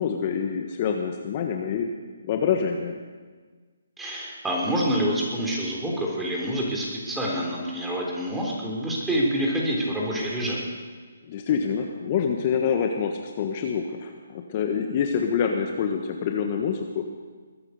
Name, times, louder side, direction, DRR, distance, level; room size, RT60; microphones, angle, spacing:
voice 1, 0.0-1.9 2.2-3.0 11.3-17.0, left 7 dB, 35° left, 3 dB, 1.4 m, -26 dB
voice 2, 4.0-10.6, equal, 5° right, -3 dB, 3.6 m, -27 dB
21.5 x 9.7 x 6.7 m, 1.5 s
hypercardioid pair, 150°, 0 cm